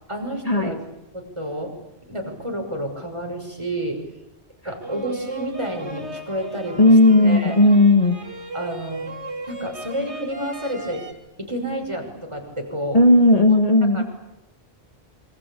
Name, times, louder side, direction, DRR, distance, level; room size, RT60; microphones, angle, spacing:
voice 1, 0.1-0.9 1.1-1.7 2.1-4.1 4.6-6.9 7.2-7.6 8.5-9.1 9.5-11.1 11.4-13.0 13.5-13.6 13.9-14.0, right 1 dB, 25° right, 3 dB, 6.1 m, -30 dB
sound 1, 4.8-11.1, right 1 dB, 85° right, 3.6 m, -36 dB
voice 2, 6.8-8.2 12.9-14.0, left 2 dB, 35° left, 4 dB, 2.2 m, -14 dB
27.0 x 25.0 x 8.6 m, 0.94 s
omnidirectional pair, 1.1 m